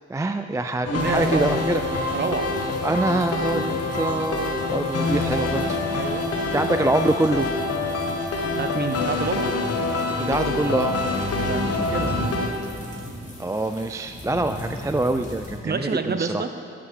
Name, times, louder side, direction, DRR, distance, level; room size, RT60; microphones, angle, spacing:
voice 1, 0.1-1.9 2.8-5.8 6.5-7.5 10.3-11.0 13.4-16.4, right 2 dB, 10° right, 8 dB, 0.4 m, -25 dB
sound 1, 0.8-12.5, left 3 dB, 50° left, 1.5 m, -26 dB
voice 2, 0.9-1.6 2.1-2.5 5.9-6.3 8.5-9.5 11.4-12.3 15.6-16.5, right 4 dB, 35° right, 9 dB, 0.8 m, -28 dB
sound 2, 1.0-15.6, left 1 dB, 25° left, 2.8 m, -38 dB
11.5 x 10.5 x 3.7 m, 2.4 s
supercardioid pair, 55°, 30 cm